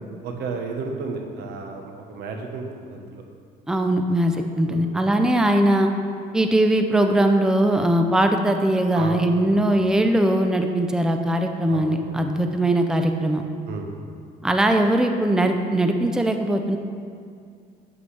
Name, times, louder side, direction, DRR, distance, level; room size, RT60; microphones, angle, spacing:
voice 1, 0.2-3.2 4.6-5.0 8.9-9.2 9.4-9.9 11.7-12.4 13.7-13.9, right 4 dB, 75° right, 3 dB, 1.2 m, -33 dB
voice 2, 3.7-5.9 6.3-13.4 14.4-16.8, right 1 dB, 5° right, 5 dB, 0.5 m, -20 dB
11.0 x 7.8 x 3.4 m, 2.3 s
cardioid pair, 110°, 17 cm